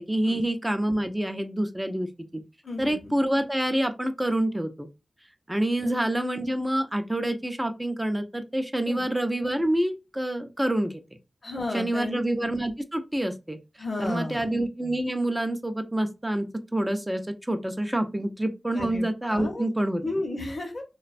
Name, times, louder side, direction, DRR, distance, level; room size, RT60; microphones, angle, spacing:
voice 1, 0.0-2.1 2.8-4.9 5.5-11.0 11.7-13.6 14.0-20.0, right 1 dB, 15° right, 7 dB, 0.4 m, -27 dB
voice 2, 2.6-2.9 5.8-5.9 8.9-9.0 11.4-12.2 13.8-14.5 18.7-19.7 20.0-20.8, left 2 dB, 60° left, 2 dB, 0.7 m, -33 dB
2.4 x 2.1 x 2.4 m, 0.26 s
cardioid pair, 55°, 0 cm